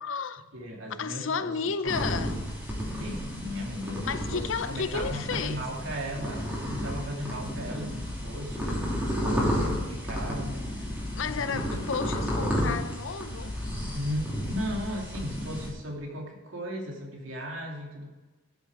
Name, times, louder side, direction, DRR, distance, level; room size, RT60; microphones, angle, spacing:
voice 1, 0.0-0.4 1.0-2.4 4.0-5.6 11.1-13.6, left 5 dB, 70° left, 0.6 m, -32 dB
voice 2, 0.5-1.5 1.8-2.1 3.0-10.5 11.2-11.8 13.9-18.1, equal, 75° right, 2.7 m, -36 dB
sound 1, 1.9-15.7, equal, 5° right, 2.8 m, -32 dB
13.0 x 7.3 x 4.9 m
head